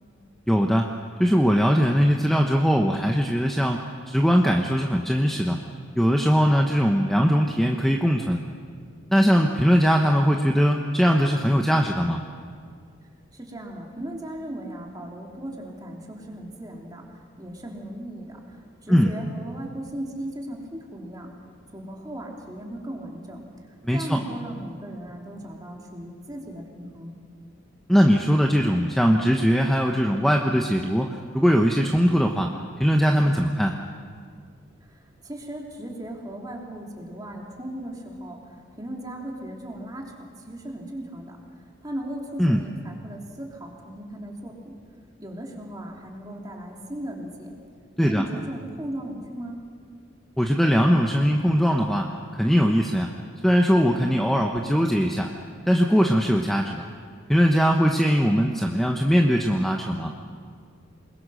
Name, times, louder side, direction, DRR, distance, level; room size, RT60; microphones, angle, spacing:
voice 1, 0.5-0.9 1.2-5.6 5.9-8.4 9.1-12.2 18.9-19.1 23.8-24.2 27.9-32.5 32.8-33.7 42.4-42.6 48.0-48.2 50.4-52.1 52.3-53.1 53.4-55.3 55.7-56.8 57.3-60.1, equal, ahead, 2 dB, 1.0 m, -20 dB
voice 2, 13.3-21.3 21.7-27.2 34.8-41.4 41.8-44.8 45.2-47.5 48.0-49.6, right 1 dB, 20° right, -1 dB, 3.1 m, -37 dB
28.0 x 21.5 x 6.4 m, 2.1 s
head